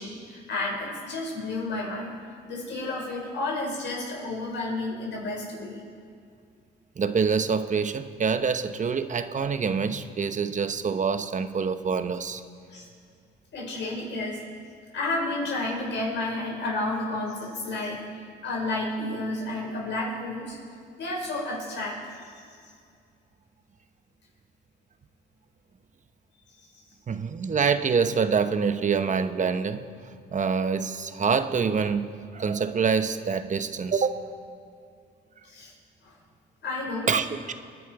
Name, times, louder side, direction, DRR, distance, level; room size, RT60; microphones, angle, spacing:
voice 1, 0.0-2.1 2.5-5.8 12.7-12.9 13.5-14.4 14.9-18.0 18.4-20.6 21.0-22.3 35.5-35.7 36.0-36.1 36.6-37.1, left 2 dB, 65° left, -2 dB, 5.7 m, -31 dB
voice 2, 7.0-12.4 27.1-29.9 30.3-34.2 37.1-37.5, right 5 dB, 40° right, 10 dB, 1.0 m, -26 dB
27.5 x 10.5 x 4.9 m, 2.3 s
cardioid pair, 90°, 20 cm